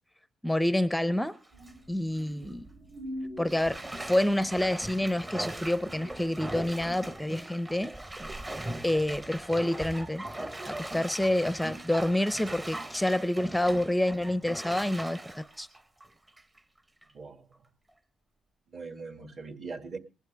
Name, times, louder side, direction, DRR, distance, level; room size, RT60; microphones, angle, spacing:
voice 1, 0.4-1.3 1.9-2.7 3.4-7.9 8.8-10.2 10.7-15.7, left 1 dB, 5° left, 0.6 m, -28 dB
Bathtub (filling or washing), 1.3-1.7 2.2-2.3 3.5-16.6 17.0-17.1, right 1 dB, 20° right, 1.0 m, -40 dB
sound 1, 1.5-7.2, equal, 85° right, 7.0 m, -46 dB
voice 2, 17.1-17.5 18.7-20.0, right 4 dB, 50° right, 2.1 m, -41 dB
20.5 x 11.5 x 3.5 m
cardioid pair, 90°, 0 cm